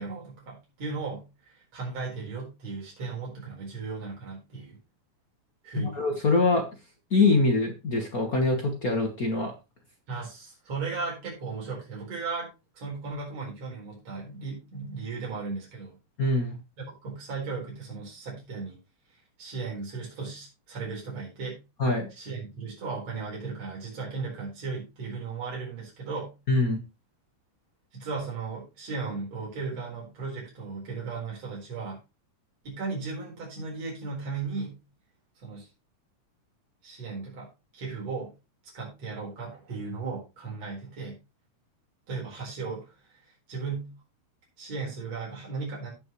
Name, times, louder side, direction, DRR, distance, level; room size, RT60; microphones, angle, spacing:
voice 1, 0.0-4.8 5.6-6.1 10.1-12.5 12.8-16.0 16.8-18.8 19.4-21.6 22.1-26.3 27.9-32.0 32.6-34.8 35.4-35.7 36.8-37.5 37.7-38.3 38.7-41.2 42.1-42.9 43.5-43.9 44.6-45.9, right 4 dB, 60° right, -4 dB, 5.5 m, -36 dB
voice 2, 5.8-6.7 7.1-9.5 16.2-16.6 21.8-22.1 26.5-26.8, left 3 dB, 45° left, 3 dB, 1.2 m, -24 dB
16.5 x 5.7 x 3.1 m, 0.27 s
omnidirectional pair, 3.4 m